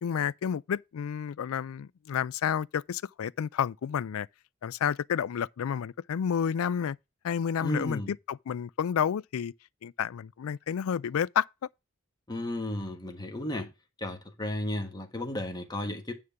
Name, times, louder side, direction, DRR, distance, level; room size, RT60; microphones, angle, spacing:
voice 1, 0.0-4.3 4.6-7.0 7.2-9.5 9.8-11.5, left 8 dB, 80° left, 0.4 m, -30 dB
voice 2, 7.6-8.1 12.3-13.7 14.0-16.1, left 1 dB, 20° left, 1.5 m, -34 dB
9.6 x 3.7 x 6.8 m
head